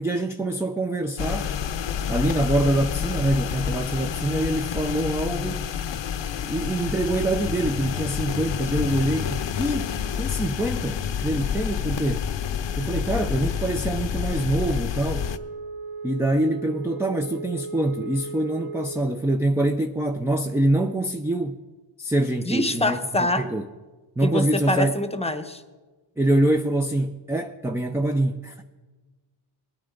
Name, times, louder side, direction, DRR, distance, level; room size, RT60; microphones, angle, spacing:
voice 1, 0.0-1.5 2.1-5.7 6.4-12.3 12.8-15.3 16.0-21.6 22.0-23.6 24.2-25.0 26.2-28.6, right 1 dB, 5° right, 0.5 m, -25 dB
sound 1, 1.2-15.4, left 8 dB, 60° left, 0.7 m, -28 dB
Wind instrument woodwind instrument, 15.0-19.2, right 3 dB, 75° right, 1.7 m, -36 dB
voice 2, 22.5-23.4 24.2-25.6, left 1 dB, 10° left, 1.0 m, -24 dB
20.0 x 9.1 x 3.9 m
cardioid pair, 85°, 49 cm